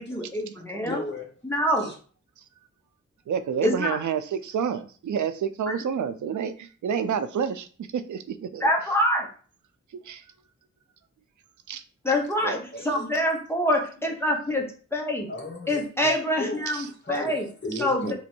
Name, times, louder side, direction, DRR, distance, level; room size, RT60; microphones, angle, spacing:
voice 1, 0.0-1.0 1.4-1.9 3.6-4.0 8.6-9.3 12.0-15.3 15.7-17.5 17.8-18.1, equal, 10° left, 0 dB, 0.9 m, -26 dB
voice 2, 0.5-1.3 1.8-1.9 12.7-13.1 15.3-16.1 16.3-18.1, left 2 dB, 40° left, 0 dB, 1.2 m, -36 dB
voice 3, 3.3-7.7 7.9-8.7 10.0-10.2 11.7-11.8 12.4-12.6 16.7-16.8, right 7 dB, 85° right, 11 dB, 0.5 m, -29 dB
3.0 x 2.6 x 4.4 m, 0.40 s
wide cardioid pair, 85°, 29 cm